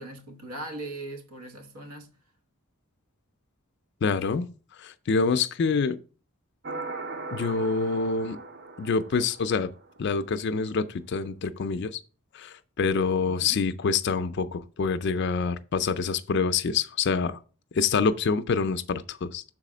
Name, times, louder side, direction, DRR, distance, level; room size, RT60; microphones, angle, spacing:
voice 1, 0.0-2.1 13.2-13.6, right 2 dB, 85° right, 1.2 m, -40 dB
voice 2, 4.0-4.5 4.8-6.0 7.3-8.4 8.8-9.7 10.0-12.0 12.3-17.4 17.7-19.4, left 5 dB, 50° left, 0.4 m, -26 dB
sound 1, 6.6-10.1, right 3 dB, 45° right, 0.6 m, -39 dB
6.1 x 4.1 x 4.9 m
head